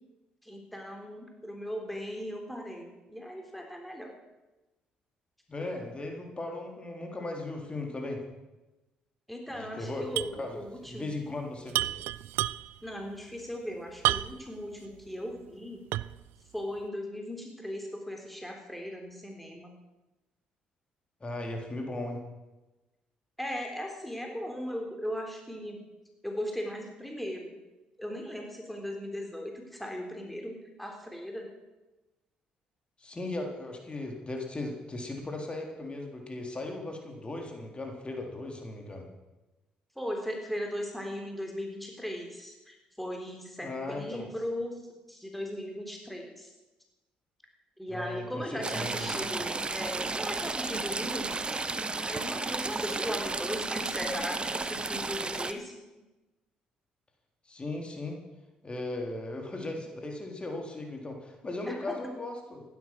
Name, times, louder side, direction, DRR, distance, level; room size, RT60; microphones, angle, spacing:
voice 1, 0.4-4.1 9.3-11.1 12.8-15.8 16.5-19.7 23.4-25.8 26.2-27.5 28.0-31.5 40.0-44.8 45.1-46.5 47.8-51.3 52.0-55.8 61.7-62.0, equal, 5° left, 2 dB, 3.7 m, -38 dB
voice 2, 5.5-8.2 9.5-10.1 10.4-11.9 21.2-22.2 33.0-39.1 43.6-44.3 47.9-49.1 57.5-58.2 58.6-62.6, left 2 dB, 30° left, 2 dB, 3.8 m, -37 dB
sound 1, 10.2-10.4 10.7-10.8 11.7-12.9 14.0-14.6 15.1-15.2 15.9-16.3, right 16 dB, 75° right, 0.4 m, -30 dB
Stream / Trickle dribble, 48.6-55.5, right 3 dB, 25° right, 1.3 m, -33 dB
16.0 x 12.0 x 6.3 m, 1.1 s
hypercardioid pair, 55°, 4 cm